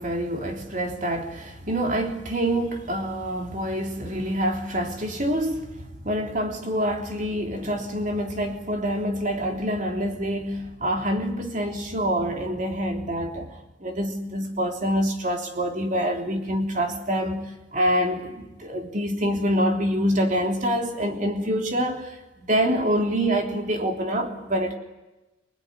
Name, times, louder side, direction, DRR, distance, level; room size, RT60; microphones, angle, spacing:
voice 1, 0.0-13.5 13.8-22.2 22.5-24.8, equal, 40° right, 3 dB, 3.3 m, -26 dB
27.0 x 21.5 x 9.9 m, 1.1 s
head